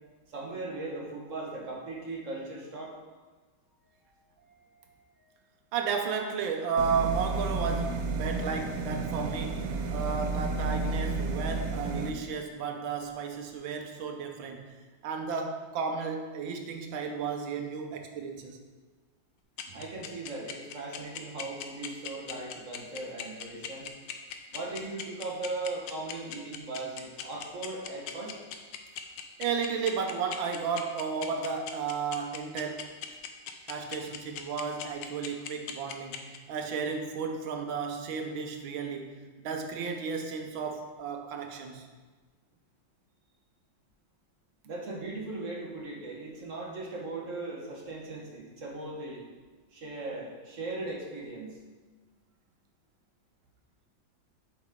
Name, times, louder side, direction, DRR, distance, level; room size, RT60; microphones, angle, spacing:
voice 1, 0.3-3.0 4.4-5.3 19.7-23.9 24.5-28.4 44.6-49.2 49.7-51.6, right 2 dB, 45° right, -2 dB, 1.6 m, -38 dB
voice 2, 5.7-14.7 15.0-18.6 19.7-19.8 29.4-32.9 33.7-41.9, right 5 dB, 90° right, 4 dB, 1.6 m, -33 dB
sound 1, 6.8-12.1, right 3 dB, 70° right, 0.8 m, -31 dB
sound 2, 19.6-36.4, left 10 dB, 75° left, 1.3 m, -38 dB
8.1 x 6.2 x 3.7 m, 1.3 s
omnidirectional pair, 2.1 m